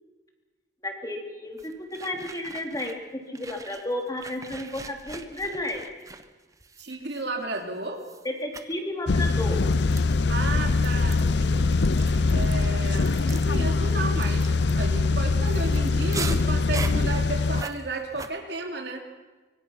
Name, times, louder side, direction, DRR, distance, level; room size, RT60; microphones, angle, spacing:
voice 1, 0.8-1.7 2.0-5.9 8.2-9.6, left 1 dB, 20° left, 2 dB, 3.5 m, -32 dB
sound 1, 1.6-3.1 3.3-7.6 8.0-8.3 8.5-8.7 9.4-18.3, right 3 dB, 20° right, 1.2 m, -41 dB
voice 2, 6.8-8.0 10.3-11.7 12.3-19.0, right 2 dB, 60° right, 3 dB, 3.3 m, -33 dB
sound 2, 9.1-17.6, left 3 dB, 65° left, 0.7 m, -23 dB
25.0 x 24.5 x 6.0 m, 1.3 s
head